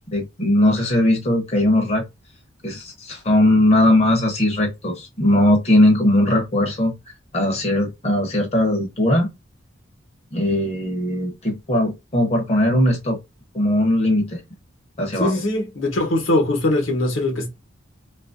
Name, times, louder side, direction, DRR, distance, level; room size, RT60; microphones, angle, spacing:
voice 1, 0.1-2.0 2.6-9.3 10.3-13.2 13.5-14.4 15.0-15.3, left 1 dB, 35° left, 0.7 m, -19 dB
voice 2, 15.2-17.5, left 1 dB, 70° left, 1.0 m, -21 dB
2.7 x 2.5 x 2.4 m
head